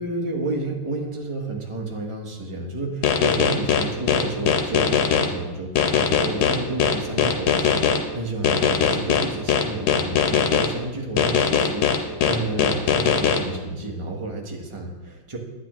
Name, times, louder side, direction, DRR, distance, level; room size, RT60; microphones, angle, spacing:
voice 1, 0.0-15.4, right 2 dB, 25° right, 0 dB, 0.6 m, -31 dB
sound 1, 3.0-5.3 5.8-8.0 8.4-10.7 11.2-13.4, left 7 dB, 90° left, 1.6 m, -20 dB
9.8 x 8.7 x 3.0 m, 1.2 s
omnidirectional pair, 2.2 m